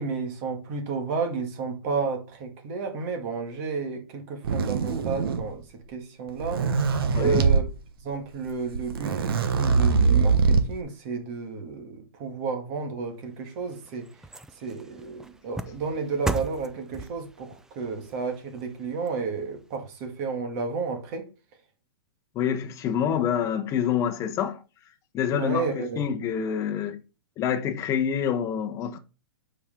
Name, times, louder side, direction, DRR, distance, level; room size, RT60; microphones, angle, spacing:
voice 1, 0.0-6.6 7.2-7.7 8.0-14.1 14.6-21.2 25.3-26.1, right 5 dB, 40° right, 2.0 m, -32 dB
sound 1, 4.4-5.6 6.3-7.6 8.5-8.6 8.7-10.8, right 5 dB, 70° right, 1.2 m, -22 dB
sound 2, 13.3-19.8 20.2-20.3, right 3 dB, 5° right, 0.4 m, -38 dB
voice 2, 22.3-24.6 25.1-27.0 27.4-29.0, left 8 dB, 25° left, 1.0 m, -27 dB
8.3 x 5.0 x 3.7 m
hypercardioid pair, 145°, 13 cm